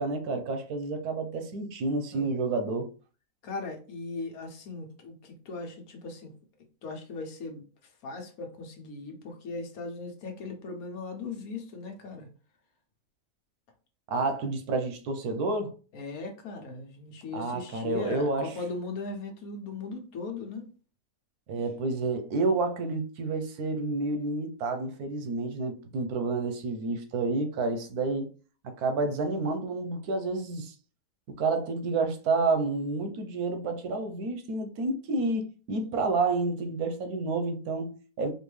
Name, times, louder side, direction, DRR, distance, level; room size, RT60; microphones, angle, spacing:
voice 1, 0.0-2.9 14.1-15.7 17.3-18.5 21.5-28.3 28.6-30.7 31.4-38.3, right 3 dB, 90° right, 1.3 m, -29 dB
voice 2, 3.4-6.3 6.8-7.6 8.0-12.3 15.9-20.6, left 3 dB, 75° left, 1.4 m, -38 dB
4.4 x 2.6 x 3.2 m
omnidirectional pair, 1.6 m